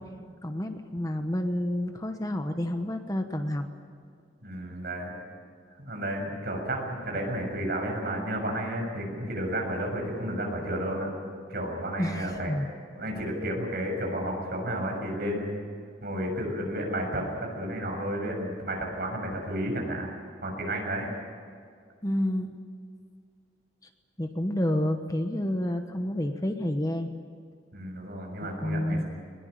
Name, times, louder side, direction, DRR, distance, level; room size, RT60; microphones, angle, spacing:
voice 1, 0.4-3.7 12.0-12.7 22.0-22.5 24.2-27.1 28.4-29.0, left 1 dB, 20° left, 6 dB, 1.1 m, -29 dB
voice 2, 4.4-5.1 5.8-11.1 11.5-12.5 13.0-15.5 16.0-20.1 20.4-21.1 27.7-29.0, right 1 dB, 55° right, 1 dB, 6.9 m, -32 dB
21.5 x 21.0 x 9.1 m, 2.2 s
head